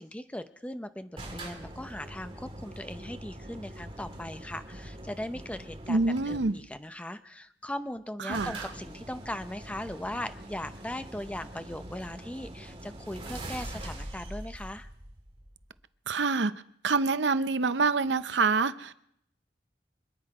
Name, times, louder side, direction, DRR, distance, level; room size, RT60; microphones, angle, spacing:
voice 1, 0.0-6.0 6.3-14.9, left 1 dB, 5° left, 0.7 m, -39 dB
sound 1, 1.2-6.7 7.7-7.8 8.0-8.1 8.3-15.8, right 1 dB, 30° right, 2.5 m, -43 dB
voice 2, 5.9-6.6 8.2-8.6 16.1-16.5 16.8-19.0, right 4 dB, 70° right, 0.7 m, -26 dB
26.0 x 9.9 x 4.9 m
head